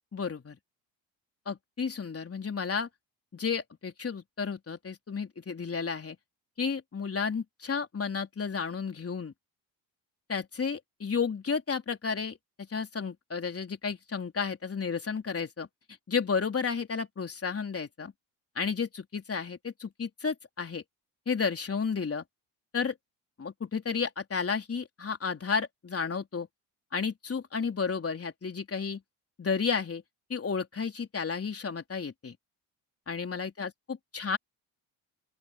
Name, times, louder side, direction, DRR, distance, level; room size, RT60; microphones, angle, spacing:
voice 1, 0.1-0.6 1.5-2.9 3.3-6.2 6.6-9.3 10.3-15.7 16.1-18.1 18.6-20.8 21.3-22.2 22.7-23.0 23.4-26.5 26.9-29.0 29.4-30.0 30.3-32.4 33.1-34.4, left 5 dB, 30° left, 4.0 m, -32 dB
open air
supercardioid pair, 70°, 43 cm